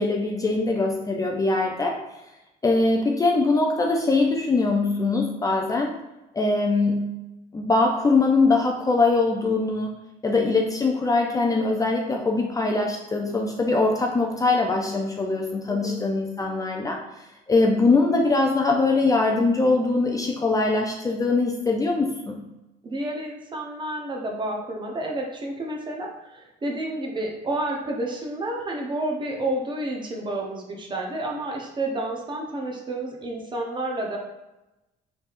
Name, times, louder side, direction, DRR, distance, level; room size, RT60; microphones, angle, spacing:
voice 1, 0.0-2.0 2.6-5.9 6.3-7.0 7.5-9.9 10.2-17.0 17.5-22.4, left 3 dB, 20° left, 1 dB, 0.5 m, -22 dB
voice 2, 15.7-16.0 22.8-34.2, right 1 dB, 25° right, 0 dB, 0.8 m, -30 dB
4.0 x 3.4 x 2.5 m, 0.96 s
cardioid pair, 110°, 17 cm